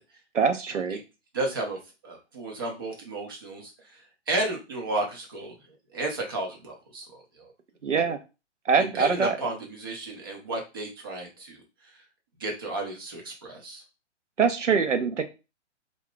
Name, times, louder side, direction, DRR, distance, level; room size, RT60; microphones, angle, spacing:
voice 1, 0.3-1.0 7.8-8.2 8.7-9.4 14.4-15.2, right 5 dB, 85° right, 8 dB, 0.6 m, -23 dB
voice 2, 1.3-1.8 2.0-4.0 4.3-5.6 5.9-7.5 8.9-11.6 12.4-13.8, right 2 dB, 20° right, 1 dB, 0.4 m, -33 dB
2.4 x 2.3 x 3.5 m, 0.28 s
figure-of-eight pair, 125°, 36 cm